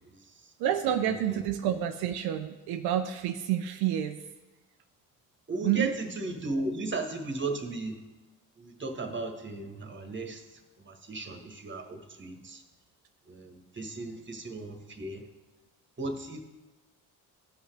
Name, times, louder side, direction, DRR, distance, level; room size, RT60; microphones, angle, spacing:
voice 1, 0.6-4.2 5.6-6.0, right 10 dB, 80° right, 7 dB, 0.5 m, -29 dB
voice 2, 5.5-8.0 8.6-12.6 13.3-15.2 16.0-16.4, right 3 dB, 30° right, 5 dB, 1.4 m, -36 dB
13.5 x 5.7 x 3.3 m, 1.1 s
supercardioid pair, 60°, 38 cm